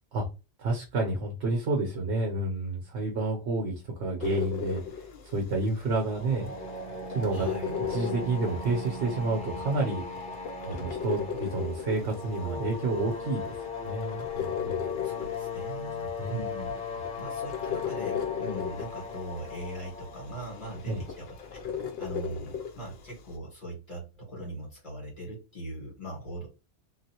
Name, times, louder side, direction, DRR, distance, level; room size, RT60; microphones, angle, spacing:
voice 1, 0.6-6.5 7.1-7.5 7.9-10.0 10.7-13.5 13.8-14.9 16.2-16.4 20.9-21.0, right 2 dB, 70° right, 0 dB, 1.1 m, -30 dB
sound 1, 4.2-23.4, left 8 dB, 65° left, 0.7 m, -38 dB
sound 2, 6.0-21.8, left 4 dB, 5° left, 1.1 m, -38 dB
voice 2, 7.3-7.7 10.6-10.8 15.0-16.8 17.2-26.5, right 2 dB, 45° left, -3 dB, 1.9 m, -40 dB
3.1 x 2.5 x 2.8 m, 0.29 s
omnidirectional pair, 1.2 m